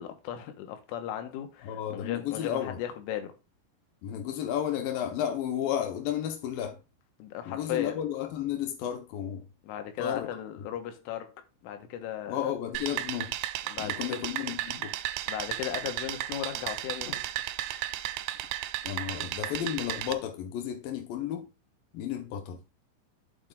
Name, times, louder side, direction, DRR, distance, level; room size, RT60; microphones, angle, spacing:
voice 1, 0.0-3.3 7.2-8.0 9.6-11.3 11.6-12.5 13.7-14.3 15.3-17.2 17.6-18.0, left 10 dB, 90° left, 3.8 m, -36 dB
voice 2, 1.6-2.8 4.0-6.8 7.4-9.5 10.0-10.3 10.6-10.7 12.3-13.3 13.8-15.0 18.8-21.5 21.9-22.6, left 10 dB, 70° left, 2.2 m, -33 dB
sound 1, 12.8-20.1, right 14 dB, 85° right, 2.9 m, -34 dB
8.8 x 7.9 x 2.5 m
omnidirectional pair, 5.6 m